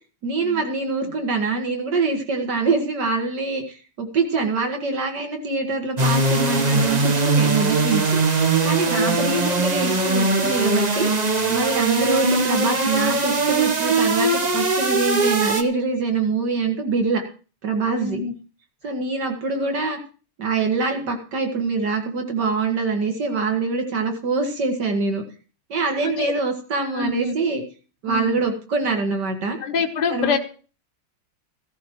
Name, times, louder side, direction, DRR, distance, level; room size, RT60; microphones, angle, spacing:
voice 1, 0.2-8.2 8.6-11.1 11.5-17.2 17.6-18.2 18.8-20.0 20.4-25.2 25.7-27.6 28.0-29.6 30.1-30.4, right 4 dB, 55° right, 4 dB, 2.3 m, -24 dB
sound 1, 6.0-15.6, right 3 dB, 90° right, 0.3 m, -21 dB
voice 2, 8.8-9.3 18.0-18.3 26.0-26.3 26.9-27.3 28.1-28.4 29.6-30.4, left 4 dB, 30° left, 4 dB, 0.8 m, -26 dB
15.5 x 13.5 x 3.1 m, 0.37 s
omnidirectional pair, 2.4 m